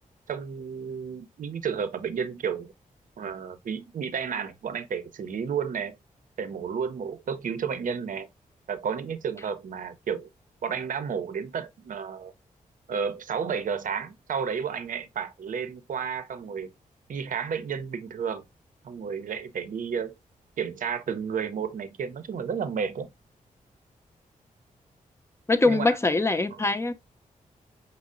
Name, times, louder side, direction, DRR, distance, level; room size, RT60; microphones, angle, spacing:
voice 1, 0.3-2.7 3.2-6.0 6.4-8.3 8.7-10.3 10.6-12.3 12.9-16.7 17.1-18.4 18.8-20.1 20.6-23.1 25.6-26.0 26.5-26.7, right 6 dB, 70° right, 0.6 m, -32 dB
voice 2, 25.5-26.9, left 3 dB, 20° left, 0.6 m, -23 dB
5.3 x 2.0 x 3.7 m
cardioid pair, 70°, 14 cm